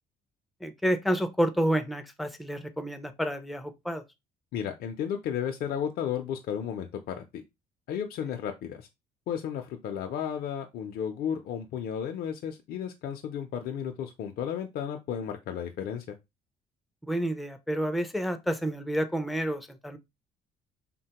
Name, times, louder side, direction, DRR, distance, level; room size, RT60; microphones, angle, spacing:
voice 1, 0.6-4.0 17.0-20.0, equal, ahead, 0.3 m, -29 dB
voice 2, 4.5-7.4 7.9-8.9 9.3-16.2, left 8 dB, 65° left, 0.5 m, -33 dB
3.4 x 2.1 x 2.8 m
cardioid pair, 110°, 17 cm